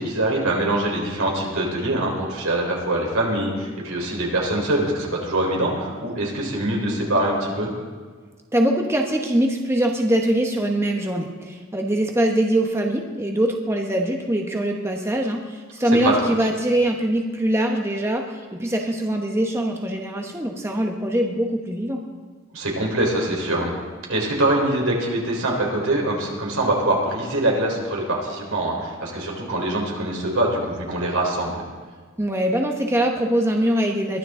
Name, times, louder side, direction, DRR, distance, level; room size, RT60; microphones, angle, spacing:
voice 1, 0.0-7.7 15.9-16.1 22.5-23.7 24.1-31.6, right 1 dB, 80° right, -1 dB, 4.2 m, -23 dB
voice 2, 8.5-22.0 32.2-34.2, right 1 dB, 15° right, 2 dB, 1.1 m, -23 dB
22.5 x 14.0 x 3.8 m, 1.5 s
head